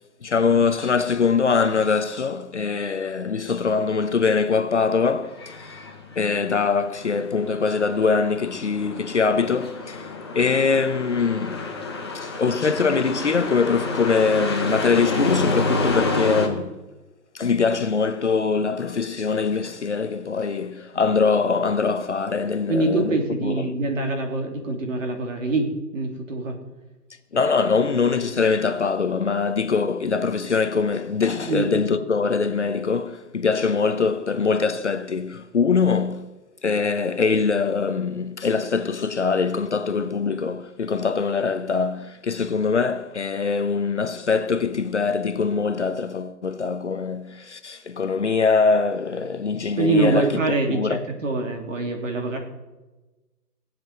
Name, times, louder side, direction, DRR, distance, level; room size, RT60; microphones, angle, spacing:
voice 1, 0.2-5.8 6.2-11.7 12.1-16.8 17.3-23.2 23.4-23.7 27.3-50.4 50.7-51.0, left 5 dB, 45° left, 0.8 m, -23 dB
sound 1, 5.2-16.5, left 2 dB, 15° left, 0.9 m, -29 dB
voice 2, 22.7-26.6 31.5-31.7 49.8-52.4, right 2 dB, 50° right, 3.1 m, -24 dB
18.0 x 7.7 x 7.9 m
hypercardioid pair, 175°, 48 cm